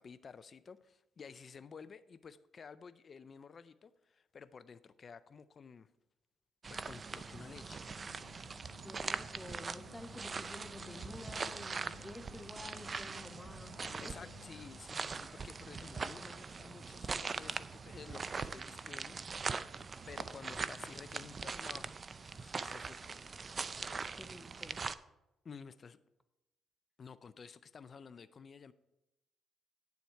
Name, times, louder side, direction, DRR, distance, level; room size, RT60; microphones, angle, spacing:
voice 1, 0.0-5.9 6.7-7.8 14.0-19.5 20.1-23.5 25.4-26.0 27.0-28.7, left 6 dB, 45° left, 13 dB, 0.4 m, -53 dB
sound 1, 6.6-24.9, right 4 dB, 35° right, 0.4 m, -42 dB
sound 2, 7.2-15.0, left 5 dB, 90° left, 0.7 m, -57 dB
voice 2, 8.8-14.3 24.2-24.8, left 1 dB, 10° left, 9 dB, 0.8 m, -50 dB
9.3 x 7.1 x 4.5 m, 0.95 s
cardioid pair, 90°, 0 cm